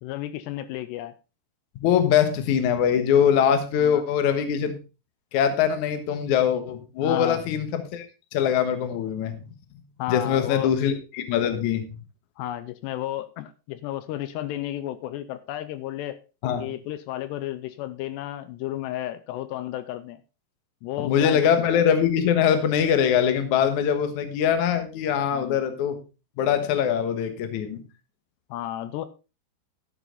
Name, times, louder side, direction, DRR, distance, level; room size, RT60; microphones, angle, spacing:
voice 1, 0.0-1.1 3.8-4.0 7.0-7.4 10.0-10.7 12.4-16.2 16.6-20.2 20.8-21.5 25.3-25.6 28.5-29.1, left 13 dB, 80° left, 13 dB, 2.8 m, -32 dB
voice 2, 1.8-4.7 5.3-8.1 8.3-9.4 10.1-11.9 16.4-16.7 21.0-26.0 26.4-27.8, left 8 dB, 60° left, 9 dB, 2.2 m, -22 dB
12.5 x 8.4 x 3.9 m, 0.30 s
omnidirectional pair, 4.9 m